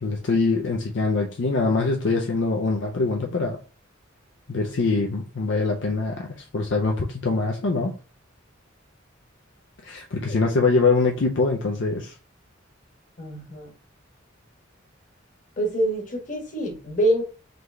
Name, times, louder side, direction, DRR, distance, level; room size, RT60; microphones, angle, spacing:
voice 1, 0.0-3.6 4.5-7.9 9.8-12.1, left 3 dB, 65° left, 0.5 m, -23 dB
voice 2, 13.2-13.7 15.6-17.2, right 1 dB, 40° left, 1.3 m, -25 dB
3.9 x 3.1 x 3.4 m
head